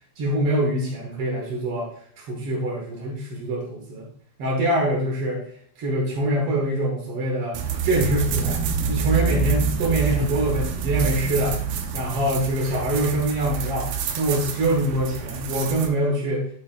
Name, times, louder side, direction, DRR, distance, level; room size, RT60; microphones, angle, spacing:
voice 1, 0.2-4.1 4.4-5.4 5.8-11.6 11.9-13.9 14.2-16.5, right 1 dB, 55° right, -2 dB, 1.7 m, -24 dB
sound 1, 7.5-15.9, right 6 dB, 75° right, 2.7 m, -27 dB
11.5 x 7.6 x 2.5 m, 0.65 s
omnidirectional pair, 4.4 m